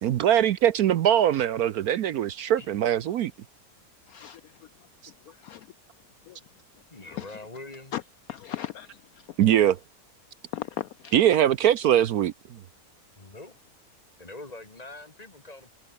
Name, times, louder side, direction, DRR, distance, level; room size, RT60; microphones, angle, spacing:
voice 1, 0.0-3.3 9.4-9.8 11.1-12.6, right 11 dB, 65° right, 1.1 m, -22 dB
voice 2, 4.1-4.4 5.3-5.7 6.3-6.4 7.1-7.4 7.9-8.0 8.3-9.3 10.5-11.1, left 12 dB, 70° left, 0.9 m, -37 dB
voice 3, 6.9-7.9 13.2-13.5 14.2-15.7, left 2 dB, 20° left, 2.4 m, -43 dB
omnidirectional pair, 1.8 m